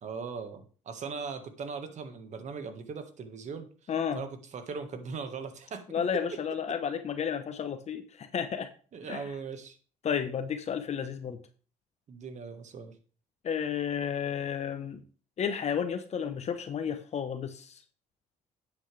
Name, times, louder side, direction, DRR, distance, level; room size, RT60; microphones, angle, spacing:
voice 1, 0.0-5.8 8.9-9.8 12.1-12.9, right 5 dB, 50° right, 8 dB, 1.7 m, -39 dB
voice 2, 3.9-4.2 5.9-8.7 9.1-9.2 10.0-11.4 13.4-15.0 15.4-17.7, left 7 dB, 50° left, 8 dB, 1.0 m, -32 dB
10.0 x 8.2 x 3.4 m, 0.39 s
cardioid pair, 90°, 15 cm